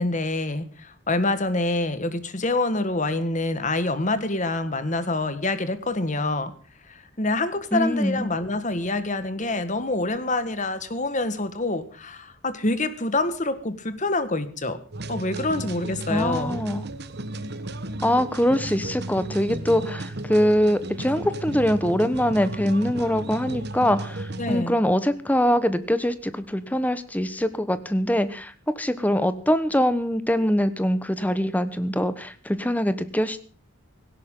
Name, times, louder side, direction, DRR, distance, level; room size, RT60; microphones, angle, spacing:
voice 1, 0.0-6.5 6.9-14.8 15.1-16.6 24.4-24.7, left 2 dB, 35° left, 12 dB, 1.6 m, -26 dB
voice 2, 7.7-8.3 16.1-16.9 18.0-33.6, equal, 5° left, 12 dB, 1.2 m, -23 dB
sound 1, 14.9-24.6, right 1 dB, 50° right, 1.3 m, -34 dB
17.5 x 16.5 x 3.8 m, 0.41 s
head